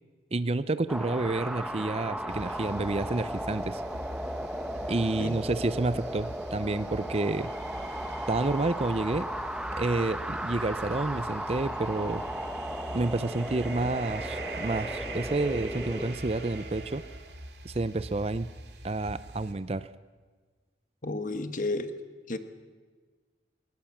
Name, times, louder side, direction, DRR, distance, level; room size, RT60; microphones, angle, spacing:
voice 1, 0.3-3.8 4.9-7.5 8.3-9.3 9.7-12.2 12.9-17.0 17.6-18.5 18.8-19.9, right 2 dB, 35° right, 15 dB, 0.6 m, -29 dB
sound 1, 0.9-16.2, right 1 dB, 5° right, 0.9 m, -36 dB
sound 2, 2.3-19.5, right 1 dB, 65° right, 2.4 m, -42 dB
voice 2, 21.0-21.9 22.3-22.4, left 2 dB, 45° left, 9 dB, 1.5 m, -32 dB
21.0 x 19.5 x 7.3 m, 1.4 s
head